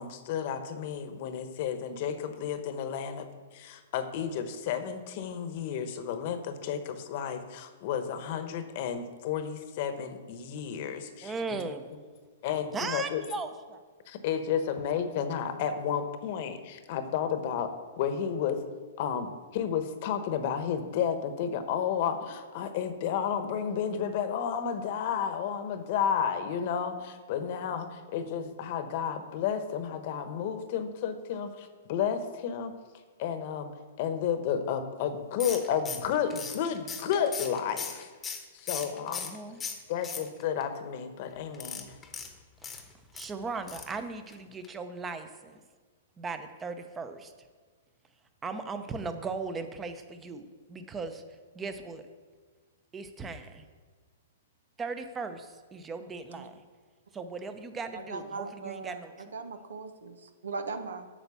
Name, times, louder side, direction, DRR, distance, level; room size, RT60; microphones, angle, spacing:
voice 1, 0.0-3.3 3.5-11.6 12.4-13.2 14.1-17.7 18.0-18.6 19.0-32.7 33.2-33.7 34.0-38.1 38.5-39.3 39.9-41.9, left 8 dB, 50° left, 9 dB, 1.0 m, -32 dB
voice 2, 11.2-11.9 12.7-13.8 27.4-27.6 38.8-39.6 42.6-45.6 46.2-47.3 48.4-51.2 51.5-52.0 52.9-53.7 54.8-56.6 57.1-59.1, right 4 dB, 15° right, 9 dB, 0.8 m, -38 dB
sound 1, 35.4-39.4 39.6-40.6 41.5-43.3 43.7-44.0 44.3-44.4 44.6-44.7, left 6 dB, 15° left, 1.0 m, -38 dB
voice 3, 57.9-61.1, right 4 dB, 90° right, 8 dB, 1.0 m, -39 dB
8.5 x 5.9 x 7.0 m, 1.4 s
hypercardioid pair, 135°, 0 cm